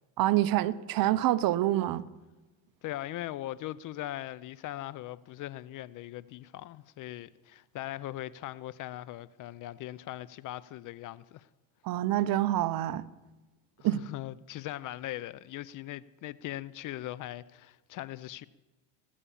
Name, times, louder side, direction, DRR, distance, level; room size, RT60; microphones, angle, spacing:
voice 1, 0.2-2.0 11.8-13.0 13.8-14.0, right 14 dB, 45° right, 0.7 m, -26 dB
voice 2, 2.8-11.5 13.8-18.5, left 14 dB, 45° left, 0.4 m, -40 dB
19.5 x 8.5 x 7.1 m
supercardioid pair, 115°, 47 cm